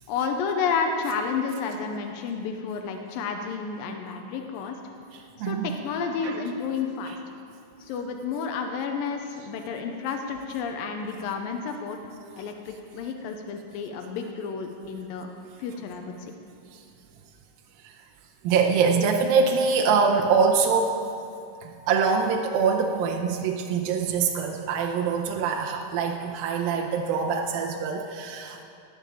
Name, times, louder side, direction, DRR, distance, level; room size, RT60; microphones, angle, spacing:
voice 1, 0.1-4.8 5.4-7.2 7.8-12.0 12.4-15.3 15.6-16.3, left 5 dB, 90° left, 4 dB, 2.5 m, -31 dB
voice 2, 5.1-5.8 6.2-6.4 7.1-7.2 16.7-16.8 17.8-17.9 18.4-21.0 21.6-28.6, right 5 dB, 85° right, 1 dB, 2.6 m, -24 dB
18.5 x 7.2 x 7.1 m, 2.5 s
omnidirectional pair, 4.0 m